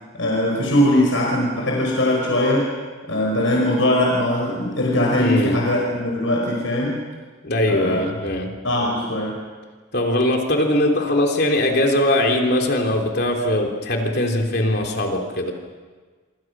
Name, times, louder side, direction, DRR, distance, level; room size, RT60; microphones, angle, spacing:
voice 1, 0.2-2.7 3.1-7.0 7.7-8.0 8.6-9.4, left 1 dB, 80° left, -1 dB, 5.4 m, -20 dB
voice 2, 5.2-5.6 7.4-8.5 9.9-15.5, left 1 dB, 55° left, 2 dB, 3.4 m, -21 dB
26.5 x 26.5 x 6.2 m, 1.4 s
head